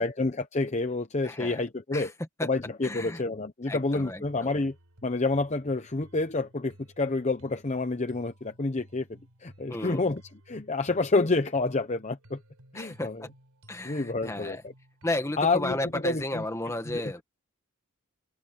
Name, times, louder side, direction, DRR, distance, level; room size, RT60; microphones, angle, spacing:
voice 1, 0.0-2.1 2.4-4.7 5.0-9.1 9.4-10.2 10.5-12.4 12.7-13.3 13.8-14.7 15.4-16.4 16.9-17.2, left 3 dB, 30° left, 0.8 m, -28 dB
voice 2, 1.2-1.6 1.9-2.1 2.4-2.5 2.8-3.2 3.7-4.5 9.7-10.0 12.7-13.1 13.7-14.6 15.0-17.2, left 1 dB, 15° left, 1.7 m, -33 dB
sound 1, 3.9-16.5, equal, 90° right, 4.3 m, -57 dB
head